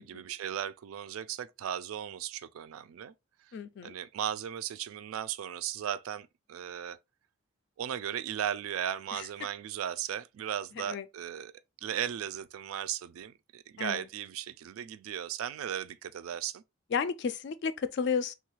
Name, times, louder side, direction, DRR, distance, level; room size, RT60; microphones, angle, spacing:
voice 1, 0.0-3.1 3.8-7.0 7.8-11.5 11.8-16.6, right 9 dB, 90° right, 0.3 m, -36 dB
voice 2, 3.5-3.9 9.1-9.2 10.8-11.0 13.8-14.0 16.9-18.3, left 6 dB, 55° left, 0.3 m, -32 dB
3.1 x 2.3 x 3.0 m
head